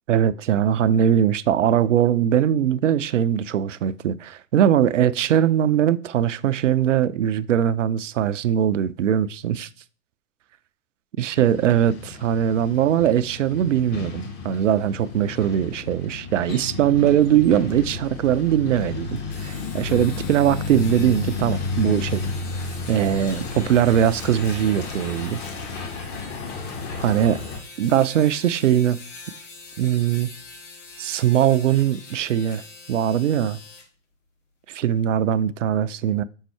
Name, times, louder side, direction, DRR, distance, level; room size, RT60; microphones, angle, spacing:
voice 1, 0.1-9.7 11.2-22.2 22.9-25.4 27.0-27.4 27.8-29.0 29.8-30.3 31.0-32.6 32.9-33.6 34.7-36.2, right 10 dB, 60° right, 0.5 m, -21 dB
Truck, 11.4-27.6, left 4 dB, 25° left, 0.9 m, -32 dB
sound 1, 19.2-33.9, left 3 dB, 55° left, 1.9 m, -44 dB
5.4 x 4.0 x 4.5 m
figure-of-eight pair, 100°, 43 cm